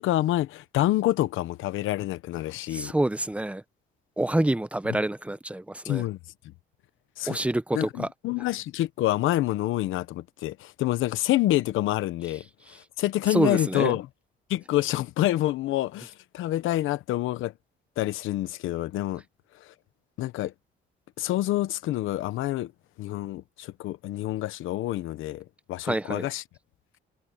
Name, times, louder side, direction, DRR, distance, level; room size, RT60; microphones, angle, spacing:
voice 1, 0.0-2.9 5.8-6.2 7.2-7.4 7.7-12.4 13.0-14.1 14.5-17.5 18.0-19.2 20.2-20.5 21.2-22.7 23.0-26.4, left 15 dB, 85° left, 1.0 m, -27 dB
voice 2, 2.7-3.6 4.2-6.0 7.3-8.1 13.3-14.0 25.8-26.3, right 1 dB, 5° right, 0.9 m, -27 dB
cardioid pair, 90°, 20 cm